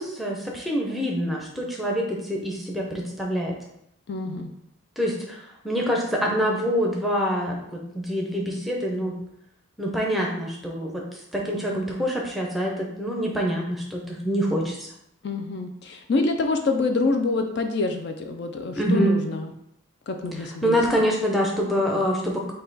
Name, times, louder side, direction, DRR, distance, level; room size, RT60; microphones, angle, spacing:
voice 1, 0.0-3.6 5.0-9.2 9.8-14.9 18.8-19.2 20.4-22.5, equal, ahead, -1 dB, 0.6 m, -26 dB
voice 2, 4.1-4.5 15.2-19.5 20.1-20.8, left 3 dB, 55° left, 5 dB, 0.3 m, -26 dB
5.4 x 2.2 x 4.0 m, 0.77 s
head